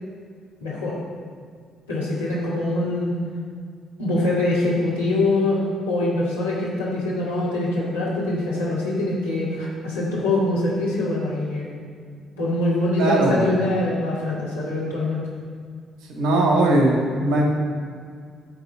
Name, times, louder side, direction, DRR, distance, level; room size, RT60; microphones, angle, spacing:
voice 1, 0.6-1.0 1.9-3.1 4.0-11.7 12.4-15.3, left 2 dB, 85° left, -8 dB, 1.9 m, -24 dB
voice 2, 13.0-13.5 16.1-17.4, right 2 dB, 60° right, -1 dB, 1.6 m, -19 dB
8.7 x 3.8 x 6.6 m, 2.1 s
figure-of-eight pair, 45°, 0 cm